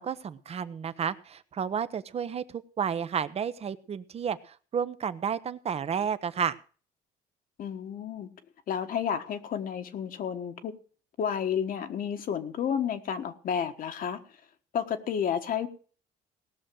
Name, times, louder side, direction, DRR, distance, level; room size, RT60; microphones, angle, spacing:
voice 1, 0.0-6.6, right 7 dB, 35° right, 14 dB, 0.9 m, -31 dB
voice 2, 7.6-8.3 8.7-10.8 11.2-14.2 14.7-15.7, left 8 dB, 55° left, 7 dB, 1.4 m, -31 dB
18.0 x 6.4 x 6.3 m, 0.40 s
cardioid pair, 110°, 17 cm